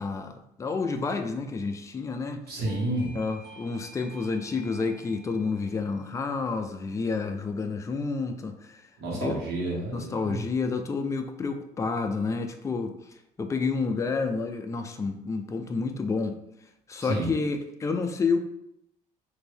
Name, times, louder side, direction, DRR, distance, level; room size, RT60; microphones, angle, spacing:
voice 1, 0.0-2.5 3.1-8.9 9.1-9.4 9.9-16.4 16.9-18.4, left 4 dB, 20° left, 6 dB, 0.3 m, -30 dB
voice 2, 2.5-3.2 9.0-10.4 17.0-17.3, right 1 dB, 70° right, -3 dB, 1.3 m, -30 dB
Doorbell, 2.6-9.1, right 2 dB, 25° right, 0.8 m, -53 dB
3.0 x 2.6 x 3.3 m, 0.80 s
cardioid pair, 110°, 17 cm